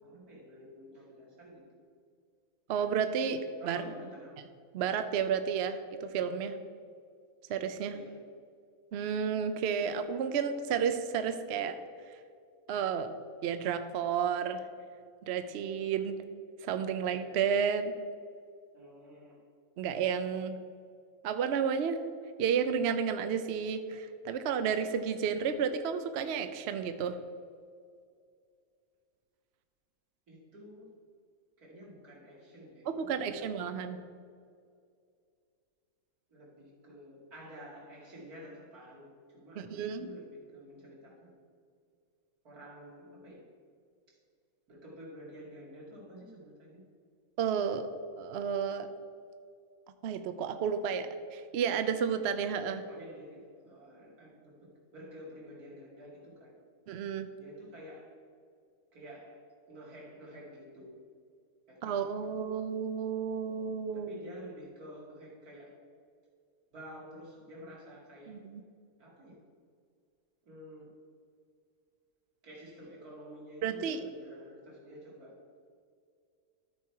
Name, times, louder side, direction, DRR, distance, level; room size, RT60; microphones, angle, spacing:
voice 1, 0.0-1.6 3.6-4.4 7.9-8.2 18.7-19.4 30.3-30.9 31.6-33.5 36.3-41.4 42.4-43.4 44.1-44.2 44.7-46.8 52.9-56.6 57.4-58.1 58.9-59.4 59.7-61.0 61.7-62.4 63.9-65.8 66.7-68.4 69.0-69.4 70.4-70.9 72.4-75.4, equal, 90° right, -5 dB, 2.8 m, -50 dB
voice 2, 2.7-3.8 4.7-6.5 7.5-8.0 8.9-11.8 12.7-13.1 13.4-14.6 15.3-16.2 16.6-17.9 19.8-20.6 21.2-22.0 22.4-27.2 32.9-34.0 39.6-40.1 47.4-47.9 48.2-48.9 50.0-52.8 56.9-57.3 61.8-64.1 68.3-68.6 73.6-74.0, right 7 dB, 60° right, 9 dB, 0.7 m, -31 dB
13.5 x 4.6 x 4.6 m, 2.2 s
omnidirectional pair, 1.5 m